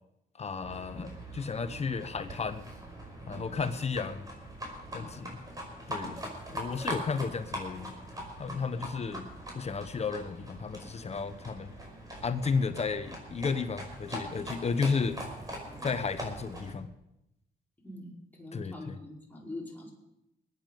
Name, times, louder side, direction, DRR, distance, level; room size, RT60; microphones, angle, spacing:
voice 1, 0.4-2.6 3.3-4.2 4.9-5.4 5.9-6.2 6.5-7.9 8.4-9.2 9.5-11.7 12.2-15.2 15.8-16.9 18.5-18.9, left 5 dB, 40° left, 10 dB, 1.0 m, -33 dB
Livestock farm animals working animals, 0.6-16.7, right 1 dB, 20° right, 5.3 m, -42 dB
voice 2, 3.3-3.6 4.9-5.3 8.7-9.2 15.7-16.0 17.8-19.9, left 1 dB, 10° left, -3 dB, 4.9 m, -45 dB
21.0 x 9.4 x 5.3 m, 0.85 s
cardioid pair, 85°, 17 cm